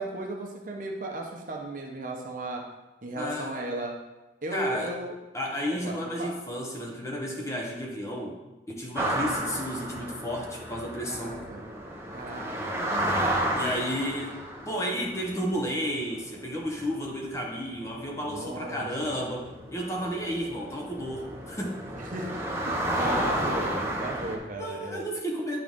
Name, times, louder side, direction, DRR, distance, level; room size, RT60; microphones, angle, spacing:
voice 1, 0.0-2.6 3.0-3.9 4.4-5.1 5.7-6.3 11.1-11.6 12.1-12.9 18.3-19.1 22.0-25.0, right 2 dB, 50° right, 0 dB, 1.0 m, -36 dB
voice 2, 3.1-3.5 4.5-4.9 5.3-8.4 8.7-11.4 13.5-21.8 24.6-25.6, equal, 15° left, -1 dB, 0.9 m, -32 dB
sound 1, 9.0-24.4, right 1 dB, 15° right, 0.8 m, -32 dB
10.5 x 3.8 x 3.6 m, 1.1 s
head